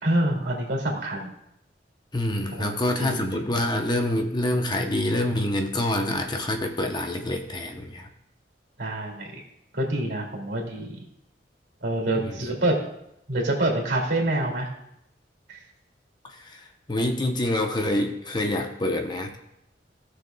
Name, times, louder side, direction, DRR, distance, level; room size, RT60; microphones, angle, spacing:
voice 1, 0.0-1.3 2.6-3.4 8.8-9.4 9.7-10.9 11.8-12.8 13.3-14.7 15.5-15.6, right 1 dB, 65° right, 0 dB, 2.6 m, -26 dB
voice 2, 2.1-8.1 12.2-12.3 16.2-19.4, left 1 dB, 25° left, 4 dB, 0.8 m, -26 dB
18.0 x 6.5 x 2.3 m, 0.80 s
head